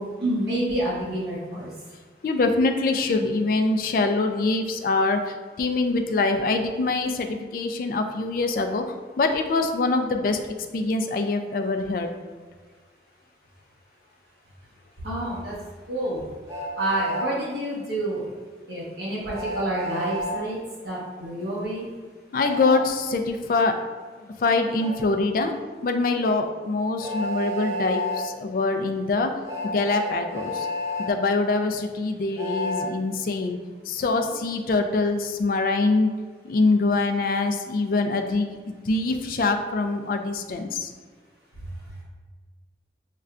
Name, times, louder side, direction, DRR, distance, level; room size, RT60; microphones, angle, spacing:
voice 1, 0.0-1.7 3.1-3.2 15.0-15.5 15.9-16.2 16.8-18.3 18.7-20.6 20.8-21.8, right 1 dB, 70° right, -7 dB, 1.1 m, -28 dB
voice 2, 2.2-5.2 5.6-8.8 9.2-10.4 10.7-12.1 22.3-23.7 24.4-25.5 25.8-28.1 28.4-29.3 29.7-30.5 31.1-33.6 33.9-36.1 36.5-38.6 38.9-40.7, left 3 dB, 50° left, 5 dB, 0.3 m, -24 dB
Train, 16.5-17.3 19.3-20.4 22.4-22.7 24.8-24.9 27.0-28.2 29.4-31.1 32.4-32.9, left 1 dB, 15° right, 0.6 m, -30 dB
6.4 x 2.2 x 2.4 m, 1.5 s
head